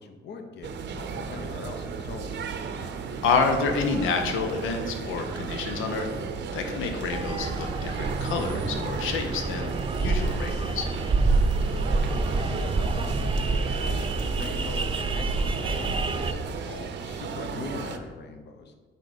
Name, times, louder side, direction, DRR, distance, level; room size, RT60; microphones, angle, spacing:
voice 1, 0.0-2.6 11.8-18.7, left 4 dB, 60° left, 6 dB, 0.9 m, -41 dB
sound 1, 0.6-18.0, right 5 dB, 65° right, 0.8 m, -35 dB
voice 2, 3.2-6.1 6.5-10.9, left 4 dB, 90° left, 5 dB, 0.9 m, -28 dB
sound 2, 7.1-16.3, right 3 dB, 25° right, 0.7 m, -27 dB
8.3 x 5.2 x 4.2 m, 1.5 s
cardioid pair, 90°, 20 cm